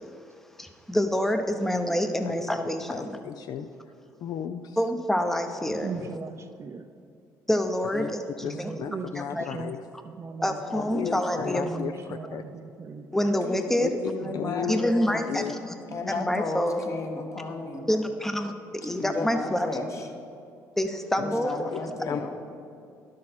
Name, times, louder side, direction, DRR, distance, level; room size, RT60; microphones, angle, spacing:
voice 1, 0.6-3.2 4.8-6.0 7.5-8.7 9.1-9.5 10.4-11.8 13.1-14.0 14.7-15.7 16.1-16.8 17.9-19.7 20.8-21.5, equal, 5° left, 6 dB, 0.7 m, -27 dB
voice 2, 2.9-3.7 4.2-4.6 8.0-8.1 8.4-9.8 10.7-11.9 12.3-12.4 13.8-13.9 14.3-14.8 15.3-15.5 21.7-21.8 22.1-22.4, left 8 dB, 65° left, 9 dB, 0.4 m, -34 dB
voice 3, 5.8-6.9 8.4-9.7 10.0-10.6 11.4-13.1 14.2-14.8 15.9-16.0, right 5 dB, 40° right, 9 dB, 0.5 m, -38 dB
voice 4, 10.6-11.7 13.2-13.6 14.0-15.4 15.9-17.9 18.8-20.1 21.2-22.4, left 3 dB, 40° left, 3 dB, 1.3 m, -34 dB
11.0 x 6.3 x 4.3 m, 2.5 s
supercardioid pair, 70°, 7 cm